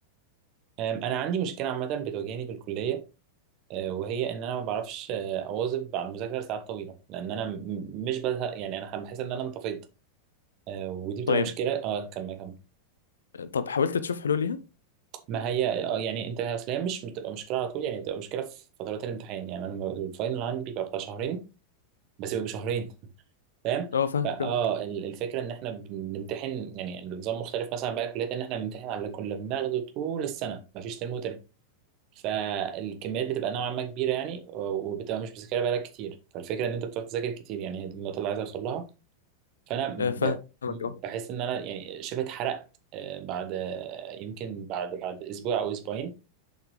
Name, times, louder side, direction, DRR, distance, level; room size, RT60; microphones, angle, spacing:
voice 1, 0.8-3.0 3.7-9.8 10.7-12.5 15.3-21.4 22.2-22.9 23.6-23.9 24.2-31.4 32.2-38.9 39.7-40.3 40.7-42.6 42.9-46.1, right 8 dB, 40° right, 1.2 m, -32 dB
voice 2, 13.3-14.6 23.9-24.5 40.0-40.3 40.6-40.9, left 6 dB, 70° left, 0.6 m, -27 dB
6.7 x 5.8 x 3.2 m
figure-of-eight pair, 90°, 0 cm